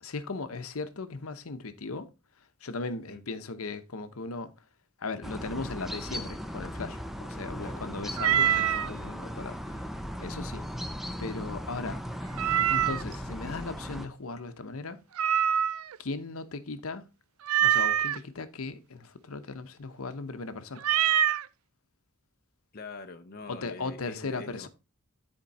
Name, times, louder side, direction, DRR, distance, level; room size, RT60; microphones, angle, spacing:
voice 1, 0.0-2.1 2.4-4.5 5.0-9.9 10.2-10.7 11.2-12.0 12.7-15.0 16.0-17.1 17.6-20.9 23.5-24.7, left 3 dB, 75° left, 0.8 m, -37 dB
sound 1, 5.2-14.1, equal, ahead, 0.6 m, -37 dB
Meow, 8.2-8.9 12.4-13.2 15.2-16.0 17.5-18.2 20.8-21.5, right 10 dB, 75° right, 0.4 m, -24 dB
voice 2, 22.7-24.7, left 3 dB, 45° left, 0.6 m, -43 dB
10.5 x 4.5 x 4.1 m
head